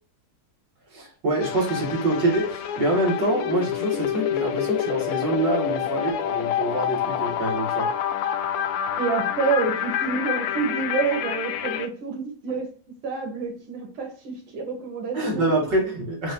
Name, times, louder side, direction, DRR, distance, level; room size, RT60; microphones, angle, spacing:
voice 1, 0.9-7.9 15.1-16.3, right 1 dB, 55° right, -3 dB, 2.3 m, -25 dB
sound 1, 1.4-11.9, left 10 dB, 90° left, 1.5 m, -27 dB
voice 2, 9.0-12.7 13.0-15.5, right 5 dB, 80° right, 2 dB, 2.0 m, -28 dB
5.2 x 2.8 x 2.6 m, 0.43 s
omnidirectional pair, 2.3 m